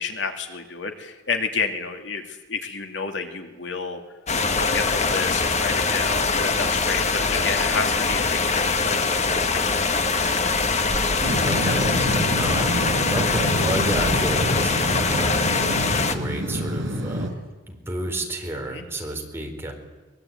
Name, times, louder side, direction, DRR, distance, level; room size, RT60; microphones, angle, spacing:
voice 1, 0.0-4.0 4.5-9.8 18.7-18.8, left 4 dB, 70° left, 5 dB, 2.6 m, -31 dB
sound 1, 4.3-16.2, left 4 dB, 40° left, 1.6 m, -23 dB
sound 2, 11.2-17.3, equal, 85° right, 6.0 m, -27 dB
voice 2, 11.4-12.8 13.1-19.7, right 1 dB, 15° right, 2 dB, 4.3 m, -31 dB
23.5 x 21.5 x 9.3 m, 1.2 s
head